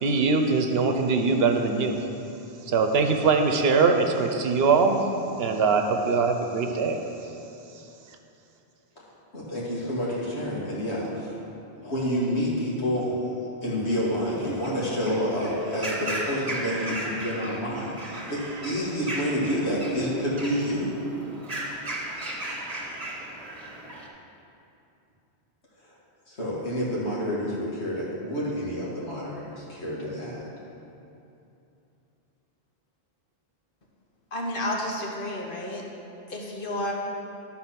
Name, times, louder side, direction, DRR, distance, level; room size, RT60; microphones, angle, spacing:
voice 1, 0.0-2.0 2.7-5.0 5.4-7.0, right 4 dB, 70° right, 5 dB, 0.9 m, -22 dB
voice 2, 9.3-11.4 11.7-13.2 13.6-21.0 26.3-30.5, equal, 85° left, -7 dB, 2.3 m, -28 dB
sound 1, 13.9-24.1, right 1 dB, 35° right, 1.2 m, -36 dB
voice 3, 34.3-35.8 36.3-36.9, left 1 dB, 55° left, -1 dB, 1.4 m, -31 dB
12.0 x 4.3 x 5.8 m, 2.8 s
omnidirectional pair, 1.1 m